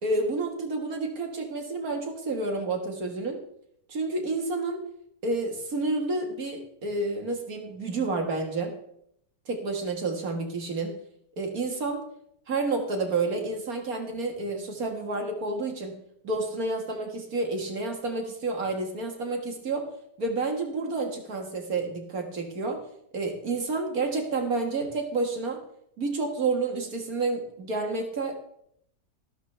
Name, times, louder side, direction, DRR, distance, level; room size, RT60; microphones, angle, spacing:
voice 1, 0.0-3.4 3.9-4.8 5.2-8.8 9.5-11.0 11.4-12.0 12.5-16.0 16.2-19.9 20.2-22.8 23.1-25.6 26.0-28.4, right 3 dB, 55° right, 3 dB, 2.1 m, -30 dB
13.5 x 12.0 x 3.4 m, 0.72 s
omnidirectional pair, 1.9 m